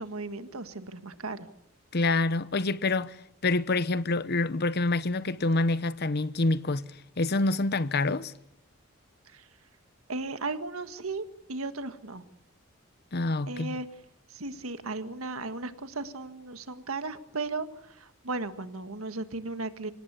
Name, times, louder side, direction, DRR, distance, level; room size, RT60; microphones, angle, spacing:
voice 1, 0.0-1.5 9.3-9.5 10.1-12.3 13.5-13.9 14.3-19.9, right 3 dB, 85° right, 1.7 m, -36 dB
voice 2, 1.9-3.2 3.4-6.9 7.2-8.3 13.1-13.8, left 2 dB, 50° left, 0.8 m, -27 dB
26.0 x 19.0 x 8.3 m
head